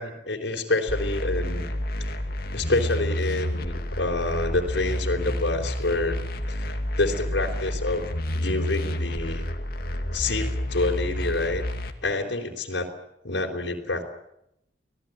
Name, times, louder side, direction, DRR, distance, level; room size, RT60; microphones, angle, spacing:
voice 1, 0.0-1.7 2.5-6.2 6.5-8.0 8.3-9.5 10.1-11.6 12.0-12.9 13.2-14.0, left 2 dB, 80° left, 2 dB, 3.9 m, -27 dB
sound 1, 0.9-11.9, left 1 dB, 55° left, 2.4 m, -29 dB
25.5 x 18.0 x 9.2 m, 0.80 s
head